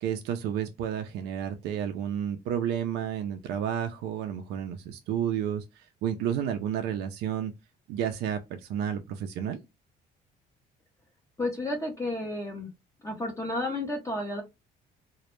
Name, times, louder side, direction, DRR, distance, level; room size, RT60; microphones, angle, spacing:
voice 1, 0.0-5.6 6.0-7.5 7.9-8.4 8.7-9.6, right 9 dB, 80° right, 0.4 m, -31 dB
voice 2, 11.4-12.7 13.0-14.4, left 2 dB, 15° left, 0.6 m, -31 dB
2.1 x 2.0 x 2.9 m
cardioid pair, 110°, 17 cm